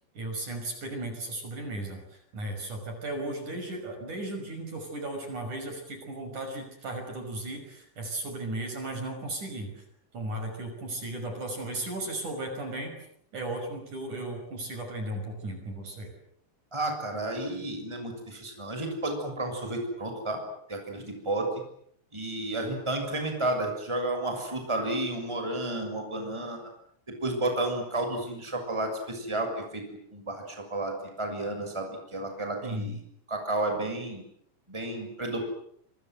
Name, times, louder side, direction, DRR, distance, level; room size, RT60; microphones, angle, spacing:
voice 1, 0.2-2.0 2.3-9.8 10.1-13.0 13.3-16.1 32.6-33.0, right 1 dB, 45° right, 5 dB, 7.0 m, -35 dB
voice 2, 16.7-20.4 20.7-21.5 22.1-26.6 27.1-29.8 30.1-33.0 33.3-34.2 34.7-35.4, right 2 dB, 5° right, 4 dB, 6.5 m, -32 dB
27.5 x 27.0 x 7.8 m, 0.68 s
omnidirectional pair, 5.0 m